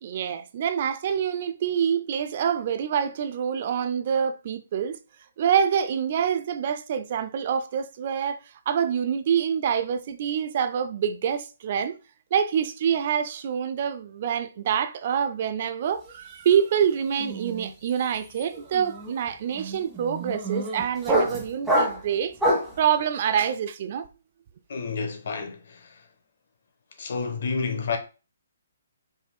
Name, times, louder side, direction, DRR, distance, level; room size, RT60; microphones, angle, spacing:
voice 1, 0.0-5.0 5.4-11.9 12.3-22.4 22.8-24.1, right 8 dB, 45° right, 0.4 m, -26 dB
sound 1, 16.0-16.3 16.6-22.8, right 1 dB, 5° right, 1.3 m, -28 dB
voice 2, 24.7-26.0 27.0-28.0, left 4 dB, 60° left, 0.9 m, -30 dB
5.3 x 3.6 x 2.2 m
hypercardioid pair, 140°, 0 cm